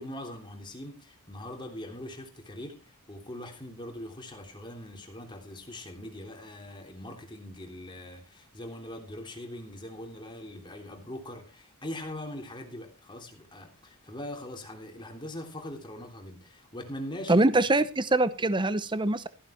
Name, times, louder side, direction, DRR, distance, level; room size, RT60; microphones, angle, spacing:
voice 1, 0.0-17.6, left 1 dB, 20° left, 3.2 m, -42 dB
voice 2, 17.3-19.3, right 2 dB, 20° right, 0.8 m, -23 dB
15.0 x 9.6 x 4.4 m
head